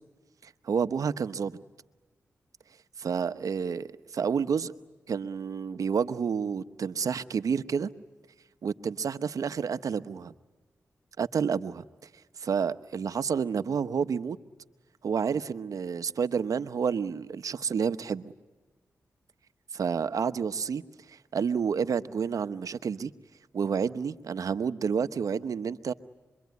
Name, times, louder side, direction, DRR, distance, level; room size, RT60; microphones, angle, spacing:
voice 1, 0.4-1.6 3.0-4.7 5.1-7.9 8.6-10.3 11.2-11.9 12.4-14.4 15.0-18.3 19.7-20.8 21.1-23.1 23.5-25.9, right 6 dB, 75° right, 1.0 m, -29 dB
26.5 x 23.5 x 9.4 m
cardioid pair, 50°, 6 cm